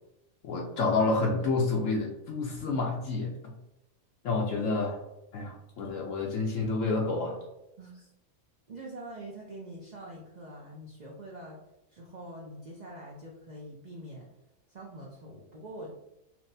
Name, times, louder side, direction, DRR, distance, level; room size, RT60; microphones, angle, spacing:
voice 1, 0.4-3.5 4.2-5.0 5.3-7.4, left 3 dB, 70° left, 0 dB, 1.0 m, -29 dB
voice 2, 7.8-8.1 8.7-11.6 11.9-14.3 14.7-15.9, right 1 dB, 45° right, -3 dB, 0.6 m, -44 dB
5.8 x 2.1 x 2.6 m, 0.91 s
omnidirectional pair, 1.4 m